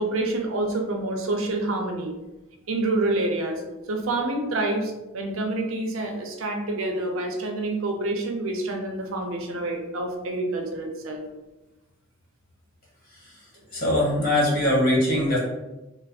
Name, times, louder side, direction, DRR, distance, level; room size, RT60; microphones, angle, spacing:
voice 1, 0.0-2.1 2.7-3.6 3.9-11.2, right 2 dB, 70° right, 3 dB, 0.6 m, -27 dB
voice 2, 13.7-15.4, left 1 dB, 45° left, -6 dB, 1.5 m, -21 dB
3.2 x 2.0 x 4.0 m, 1.0 s
head